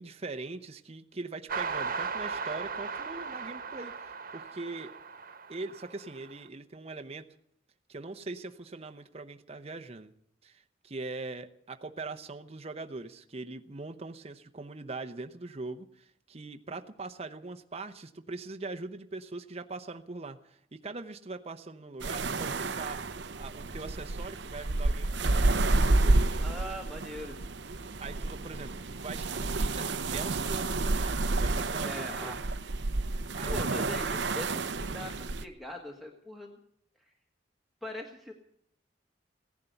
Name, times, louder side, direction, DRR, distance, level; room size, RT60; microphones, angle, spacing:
voice 1, 0.0-4.9 5.5-7.3 7.9-10.1 10.4-23.1 23.3-26.4 28.0-32.4 33.3-34.1, right 3 dB, 35° right, 6 dB, 0.8 m, -42 dB
sound 1, 1.5-6.3, right 5 dB, 50° right, 1.3 m, -37 dB
sound 2, 22.0-35.5, right 2 dB, 70° right, 0.8 m, -30 dB
voice 2, 26.4-27.4 31.8-32.5 33.4-36.6 37.0-37.1 37.8-38.3, left 1 dB, ahead, 1 dB, 1.6 m, -41 dB
16.5 x 11.0 x 7.9 m, 0.67 s
head